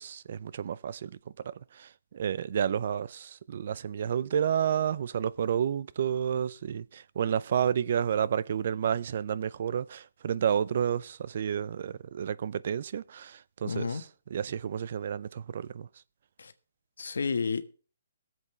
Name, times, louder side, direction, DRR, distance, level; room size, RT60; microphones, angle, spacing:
voice 1, 0.0-14.1 14.3-15.9, right 8 dB, 55° right, 0.5 m, -30 dB
voice 2, 13.6-14.0 16.4-16.5 17.0-17.7, left 5 dB, 85° left, 1.3 m, -31 dB
22.0 x 7.7 x 3.3 m
hypercardioid pair, 155°, 0 cm